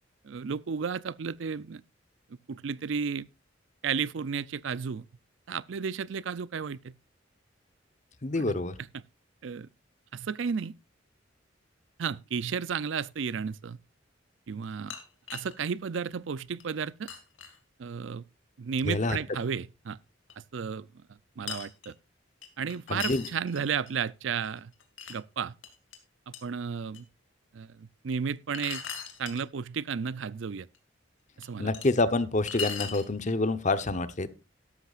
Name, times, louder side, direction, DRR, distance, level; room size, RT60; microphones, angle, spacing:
voice 1, 0.2-1.8 2.5-3.3 3.8-5.1 5.5-6.9 8.4-8.5 8.9-9.0 9.4-9.7 10.1-10.7 12.0-13.8 14.5-14.9 15.3-17.1 17.8-18.2 18.6-20.0 20.5-20.9 21.4-21.9 22.6-24.7 25.1-25.5 26.3-27.1 27.5-28.8 29.2-30.7 31.4-31.7, right 6 dB, 75° right, 0.5 m, -33 dB
voice 2, 8.2-8.7 18.9-19.2 22.9-23.2 31.6-34.3, left 2 dB, 40° left, 0.9 m, -27 dB
sound 1, 14.6-15.6 16.1-16.2 16.6-16.7 17.1-17.6 19.4-19.5 20.3-20.4 21.5-21.9 22.4-23.9 24.4-25.2 25.6-26.0 26.3-26.4 26.9-27.0 28.5-29.4 30.7-30.8 31.4-31.9 32.5-33.1, left 7 dB, 85° left, 2.3 m, -38 dB
13.5 x 11.5 x 2.4 m
head